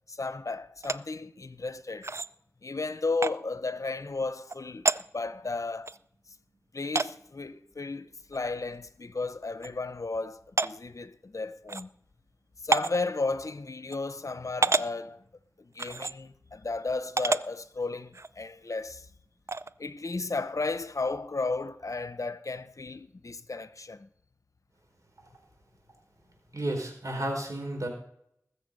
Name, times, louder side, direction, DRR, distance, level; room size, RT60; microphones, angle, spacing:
voice 1, 0.1-2.1 2.6-5.9 6.7-11.9 12.6-15.2 15.6-19.1 19.8-24.1, left 3 dB, 70° left, 0.7 m, -34 dB
sound 1, 0.8-1.0 2.0-2.3 3.2-3.3 4.5-4.6 4.8-5.0 5.9-6.0 6.9-7.1 8.3-8.4 8.8-8.9 9.6-9.7 10.6-10.7 11.7-11.8 12.7-13.0 13.9-14.0 14.6-14.9 15.8-16.1 17.2-17.4 18.1-18.3 19.5-19.7, right 3 dB, 55° right, 0.4 m, -27 dB
voice 2, 26.5-27.9, right 1 dB, 70° right, 4.6 m, -32 dB
20.5 x 7.0 x 5.4 m
wide cardioid pair, 40°, 6 cm